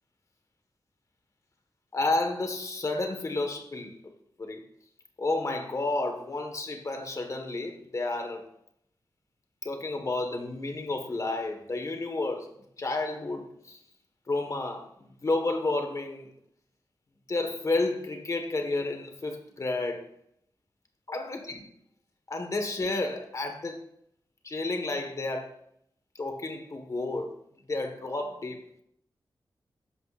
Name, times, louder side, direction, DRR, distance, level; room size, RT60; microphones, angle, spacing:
voice 1, 1.9-3.9 4.4-4.6 5.2-8.4 9.6-13.8 14.3-16.3 17.3-20.1 21.1-21.6 22.3-23.8 24.4-25.5 26.2-27.3 27.7-28.6, left 2 dB, 40° left, 1.6 m, -31 dB
14.5 x 11.5 x 2.6 m
wide cardioid pair, 155°, 8 cm